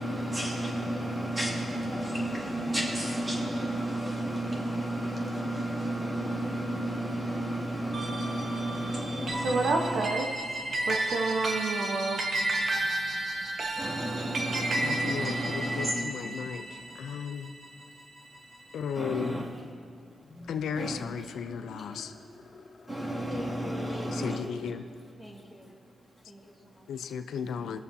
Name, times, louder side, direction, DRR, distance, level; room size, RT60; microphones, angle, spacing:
voice 1, 0.0-10.0 13.8-16.0 16.9-17.0 18.9-19.5 20.8-21.0 22.9-24.4, right 1 dB, 20° right, -5 dB, 2.3 m, -32 dB
sound 1, 7.9-18.5, right 2 dB, 50° right, 1.2 m, -33 dB
sound 2, 9.1-9.3 10.3-17.2 20.2-24.0, left 1 dB, 55° left, 2.1 m, -49 dB
voice 2, 9.4-10.3 10.8-12.3, right 3 dB, 75° right, 2 dB, 1.0 m, -29 dB
voice 3, 14.8-17.6 18.7-19.5 20.5-22.1 24.1-24.8 26.9-27.8, left 7 dB, 85° left, 8 dB, 0.4 m, -35 dB
voice 4, 23.3-24.8 25.2-25.7 26.3-26.9, left 1 dB, ahead, -1 dB, 1.9 m, -45 dB
20.5 x 6.9 x 2.8 m, 2.6 s
cardioid pair, 85°, 0 cm